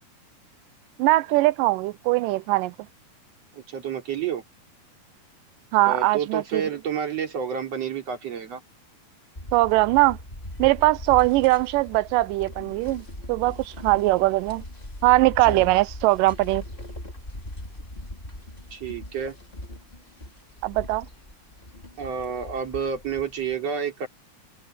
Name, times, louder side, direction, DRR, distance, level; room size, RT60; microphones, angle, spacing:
voice 1, 1.0-2.7 5.7-6.6 9.5-10.2 10.6-14.6 15.0-16.6 20.6-21.1, right 19 dB, 85° right, 2.2 m, -21 dB
voice 2, 3.5-4.4 5.8-8.6 15.5-15.6 18.7-19.4 22.0-24.1, right 7 dB, 50° right, 4.0 m, -29 dB
sound 1, 9.4-23.6, left 1 dB, 15° left, 3.5 m, -40 dB
omnidirectional pair, 3.9 m